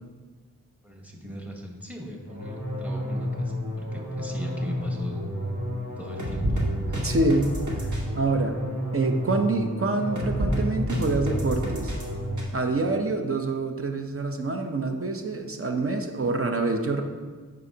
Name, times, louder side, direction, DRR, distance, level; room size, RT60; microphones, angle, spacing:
voice 1, 0.8-5.2 6.0-7.1, left 1 dB, 5° right, 0 dB, 1.2 m, -39 dB
sound 1, 2.3-12.4, equal, 60° right, 1.5 m, -29 dB
voice 2, 7.0-7.5 8.1-8.6 8.9-11.9 12.5-17.0, right 3 dB, 40° right, 5 dB, 0.7 m, -26 dB
9.4 x 5.3 x 2.8 m, 1.4 s
wide cardioid pair, 70°, 33 cm